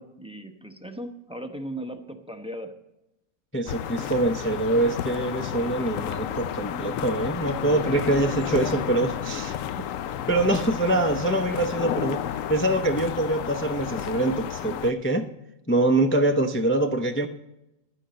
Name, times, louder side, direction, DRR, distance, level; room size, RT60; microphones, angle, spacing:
voice 1, 0.0-2.7, right 1 dB, 5° right, 6 dB, 0.7 m, -37 dB
voice 2, 3.5-9.9 10.3-12.2 12.5-15.3 15.7-17.3, right 2 dB, 20° left, 6 dB, 0.3 m, -24 dB
sound 1, 3.7-14.9, left 10 dB, 70° left, 1.0 m, -31 dB
12.0 x 9.9 x 5.2 m, 0.90 s
omnidirectional pair, 1.5 m